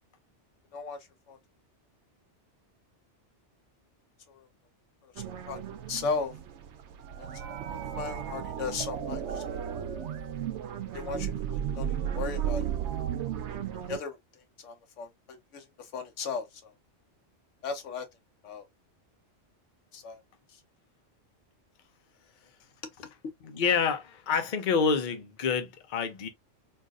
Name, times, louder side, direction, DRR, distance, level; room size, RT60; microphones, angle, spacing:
sound 1, 5.2-14.0, right 9 dB, 75° right, 0.8 m, -34 dB
voice 1, 5.9-6.3 7.2-7.4 7.7-9.6 10.9-12.6 13.9-14.2 14.6-16.7 17.6-18.1 18.4-18.7 19.9-20.2, left 5 dB, 90° left, 1.2 m, -36 dB
voice 2, 23.4-26.3, left 5 dB, 45° left, 0.8 m, -27 dB
3.9 x 2.6 x 2.3 m
omnidirectional pair, 1.2 m